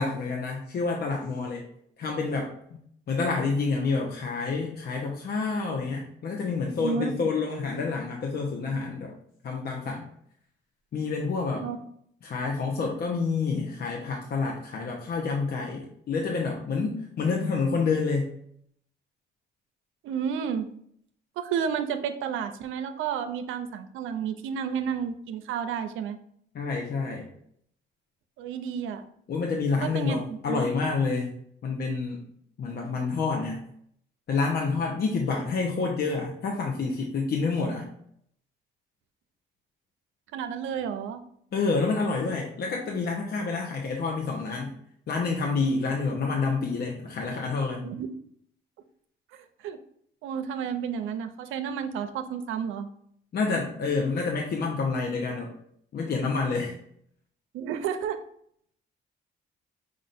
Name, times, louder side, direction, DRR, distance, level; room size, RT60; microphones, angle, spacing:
voice 1, 0.0-1.6 2.0-2.5 3.1-9.1 9.4-10.1 10.9-11.7 12.2-18.3 26.5-27.3 29.3-31.3 31.6-32.2 32.6-33.6 34.3-37.9 41.5-44.7 45.1-47.8 53.3-55.5 55.9-56.7, left 4 dB, 55° left, 0 dB, 0.8 m, -28 dB
voice 2, 6.8-7.1 11.6-11.8 20.0-20.7 21.4-26.2 28.4-29.1 29.8-30.2 30.5-30.7 40.3-41.2 47.8-48.1 49.3-49.8 50.2-52.9 57.5-58.2, right 7 dB, 85° right, 9 dB, 0.5 m, -31 dB
5.1 x 2.5 x 4.2 m, 0.67 s
cardioid pair, 90°, 20 cm